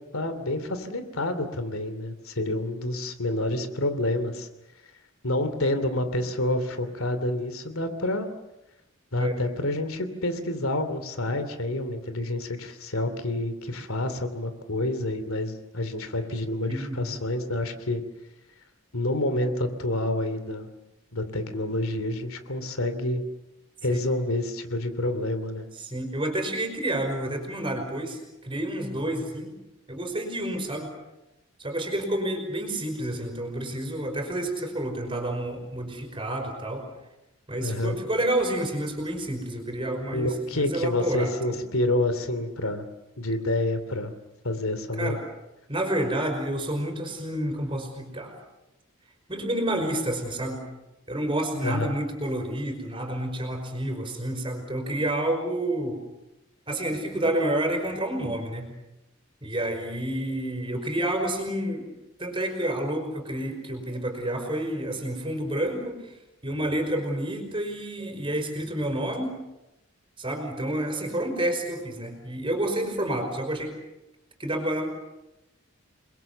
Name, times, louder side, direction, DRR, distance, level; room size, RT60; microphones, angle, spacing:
voice 1, 0.1-4.5 5.2-8.3 9.1-18.0 18.9-20.7 21.1-23.2 23.8-25.7 37.6-38.0 40.1-42.9 43.2-44.1 44.4-45.2 51.6-51.9, left 1 dB, 75° left, 10 dB, 2.9 m, -28 dB
voice 2, 16.7-17.2 23.9-24.0 25.7-29.5 29.9-30.9 31.6-36.9 37.5-41.6 45.0-45.2 45.7-48.3 49.3-50.6 51.1-56.0 56.7-58.7 59.4-61.9 62.2-66.2 66.4-69.4 70.2-73.7 74.4-74.9, right 1 dB, 25° right, 5 dB, 5.4 m, -29 dB
29.5 x 22.0 x 6.9 m, 0.94 s
head